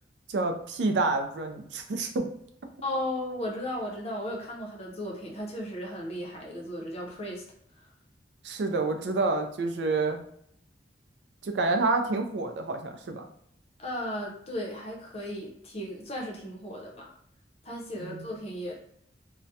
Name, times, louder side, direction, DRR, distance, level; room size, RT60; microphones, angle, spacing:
voice 1, 0.3-2.3 8.4-10.2 11.4-13.3 18.0-18.3, right 3 dB, 75° right, 5 dB, 0.4 m, -28 dB
voice 2, 2.8-7.4 7.8-7.9 13.8-17.1 17.6-18.7, left 1 dB, 35° left, -1 dB, 0.5 m, -35 dB
2.3 x 2.1 x 2.7 m, 0.70 s
head